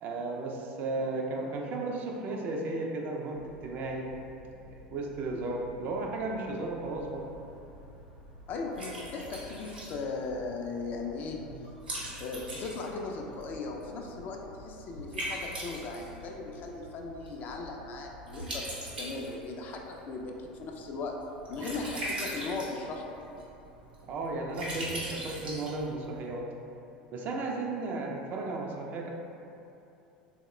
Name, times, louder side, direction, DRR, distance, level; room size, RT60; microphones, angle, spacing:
voice 1, 0.0-4.1 4.6-7.3 11.5-11.6 24.0-26.5 27.1-29.1, right 2 dB, 40° right, 0 dB, 0.4 m, -34 dB
sound 1, 3.3-19.9, equal, 85° left, 0.7 m, -53 dB
Liquid, 6.8-26.3, right 1 dB, 80° right, 0.8 m, -42 dB
voice 2, 8.5-11.4 12.2-21.2 21.5-23.2, left 3 dB, 40° left, 1 dB, 0.4 m, -38 dB
3.4 x 2.1 x 3.1 m, 2.8 s
figure-of-eight pair, 75°, 5 cm